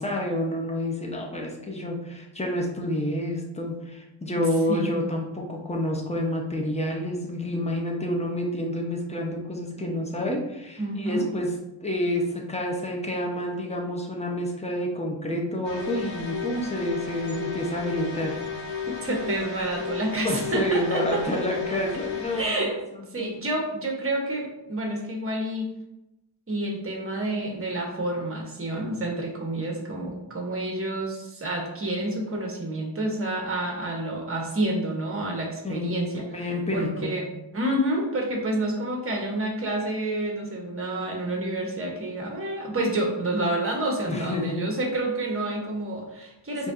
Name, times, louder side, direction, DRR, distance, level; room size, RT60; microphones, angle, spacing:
voice 1, 0.0-11.5 11.8-18.4 20.2-22.7 23.2-23.3 35.6-37.1 44.1-44.6 46.6-46.7, left 1 dB, 15° left, 0 dB, 0.8 m, -29 dB
voice 2, 4.7-5.0 10.8-11.3 18.9-21.2 22.4-22.8 23.1-25.7 26.5-37.2 37.5-46.7, right 1 dB, 30° right, 1 dB, 0.9 m, -29 dB
sound 1, 15.6-22.4, left 6 dB, 70° left, 0.8 m, -34 dB
5.0 x 2.6 x 2.5 m, 0.91 s
wide cardioid pair, 55°, 46 cm